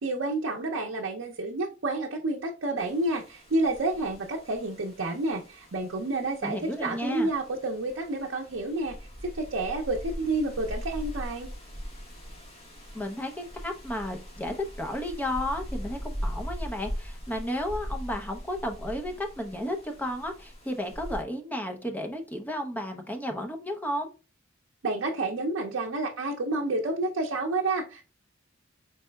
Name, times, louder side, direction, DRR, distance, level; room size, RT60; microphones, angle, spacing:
voice 1, 0.0-9.0 9.2-11.5 24.8-28.0, right 2 dB, 70° right, 0 dB, 0.6 m, -29 dB
sound 1, 2.8-21.2, equal, 30° left, 1.5 m, -40 dB
voice 2, 6.4-7.3 12.9-24.1, left 1 dB, 10° left, 3 dB, 0.7 m, -33 dB
4.6 x 4.1 x 2.2 m, 0.33 s
head